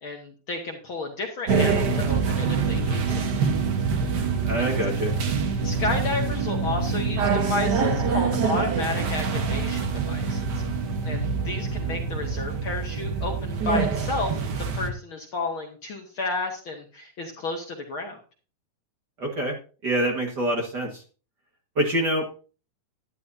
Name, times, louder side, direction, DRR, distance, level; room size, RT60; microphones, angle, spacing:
voice 1, 0.0-3.3 4.6-4.8 5.6-10.6 11.0-14.5 14.7-18.2, left 3 dB, 50° left, 2 dB, 1.7 m, -32 dB
sound 1, 1.5-14.9, right 5 dB, 60° right, 1.1 m, -25 dB
voice 2, 4.4-5.1 19.2-19.6 19.8-21.0 21.8-22.4, right 1 dB, 40° right, 0 dB, 1.8 m, -26 dB
12.0 x 11.5 x 2.7 m, 0.36 s
omnidirectional pair, 3.6 m